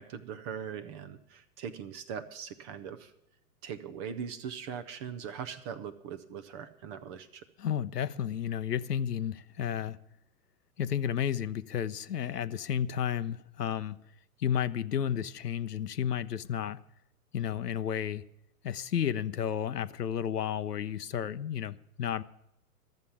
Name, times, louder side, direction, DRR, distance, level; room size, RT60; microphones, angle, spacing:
voice 1, 0.0-3.1 3.6-7.4, right 7 dB, 20° right, 0.4 m, -41 dB
voice 2, 7.6-10.0 10.8-14.0 14.4-16.8 17.3-18.2 18.6-22.2, left 9 dB, 90° left, 0.8 m, -32 dB
13.0 x 7.4 x 9.7 m
hypercardioid pair, 120°, 46 cm